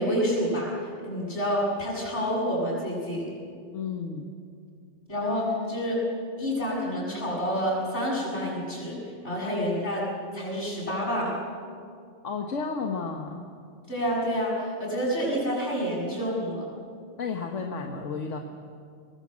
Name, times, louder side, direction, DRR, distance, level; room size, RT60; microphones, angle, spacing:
voice 1, 0.0-3.2 5.1-6.0 6.4-9.0 9.2-10.0 10.3-11.3 13.9-16.7, equal, 65° left, -3 dB, 7.5 m, -28 dB
voice 2, 3.7-4.3 12.2-13.4 17.2-18.4, left 5 dB, 90° left, 3 dB, 1.6 m, -32 dB
24.0 x 20.0 x 7.5 m, 2.3 s
omnidirectional pair, 1.2 m